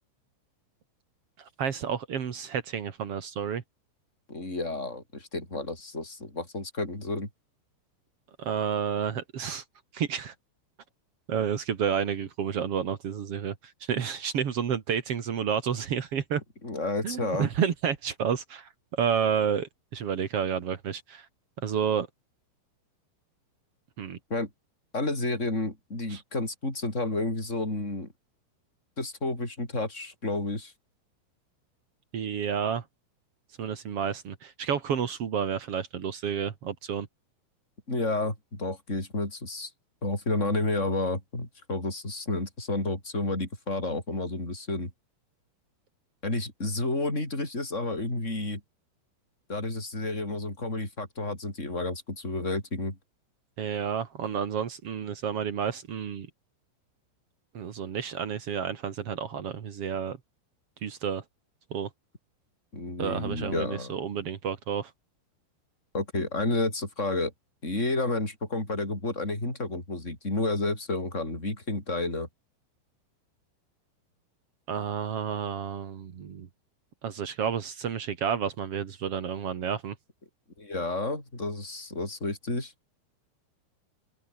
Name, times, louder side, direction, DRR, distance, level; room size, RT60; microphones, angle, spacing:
voice 1, 1.4-3.6 8.4-9.6 9.9-10.3 11.3-16.4 17.0-21.3 21.6-22.1 24.0-24.2 26.1-26.2 32.1-32.8 33.6-37.1 53.6-56.3 57.5-60.2 60.8-61.2 61.7-61.9 63.0-64.9 74.7-76.5 77.0-79.9, right 7 dB, 85° right, 1.3 m, -30 dB
voice 2, 4.3-7.3 16.6-17.5 24.3-24.5 24.9-28.1 29.0-30.7 37.9-39.7 40.0-44.9 46.2-48.6 49.5-53.0 62.7-64.0 65.9-67.3 67.6-72.3 80.6-82.7, left 2 dB, 15° left, 7.9 m, -31 dB
open air
omnidirectional pair, 5.9 m